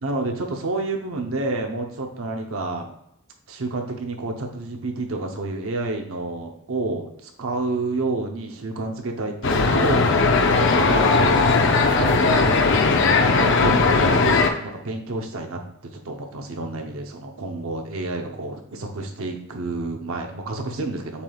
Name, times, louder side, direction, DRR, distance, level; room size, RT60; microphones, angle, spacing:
voice 1, 0.0-2.9 3.5-11.4 11.9-12.7 13.3-15.6 15.9-21.2, right 2 dB, 75° right, 3 dB, 0.7 m, -29 dB
sound 1, 9.4-14.5, left 3 dB, 60° left, 0.6 m, -18 dB
6.9 x 3.3 x 2.3 m, 0.81 s
head